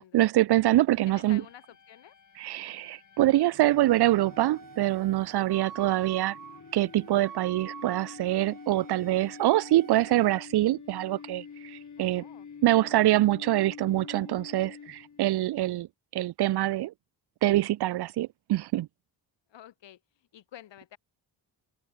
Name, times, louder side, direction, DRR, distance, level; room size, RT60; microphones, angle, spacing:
voice 1, 0.0-1.4 2.4-6.4 6.7-12.2 12.6-15.9 16.1-16.9 17.4-18.9, right 15 dB, 65° right, 0.6 m, -25 dB
sound 1, 0.9-15.4, left 6 dB, 40° left, 6.2 m, -48 dB
voice 2, 1.0-2.1 5.6-6.1 12.0-13.0 19.5-21.0, left 11 dB, 85° left, 6.1 m, -51 dB
Wind instrument woodwind instrument, 3.6-10.4, right 7 dB, 50° right, 4.2 m, -46 dB
cardioid pair, 130°, 43 cm